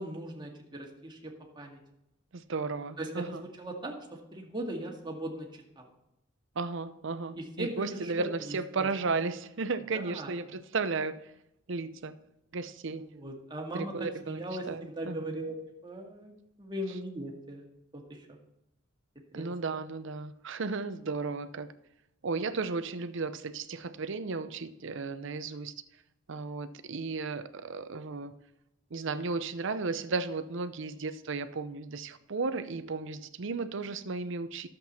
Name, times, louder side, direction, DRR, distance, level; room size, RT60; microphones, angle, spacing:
voice 1, 0.0-1.8 3.0-5.9 7.4-8.9 9.9-10.3 13.0-13.9 14.2-15.6 15.8-18.3 19.3-19.5, right 1 dB, 25° right, 0 dB, 2.0 m, -39 dB
voice 2, 2.3-3.5 6.6-11.2 11.7-12.2 12.5-13.1 13.7-14.4 14.7-15.2 19.3-21.7 22.2-25.7 26.3-28.4 28.9-34.7, right 4 dB, 65° right, 12 dB, 0.7 m, -34 dB
12.0 x 7.7 x 4.3 m, 0.87 s
head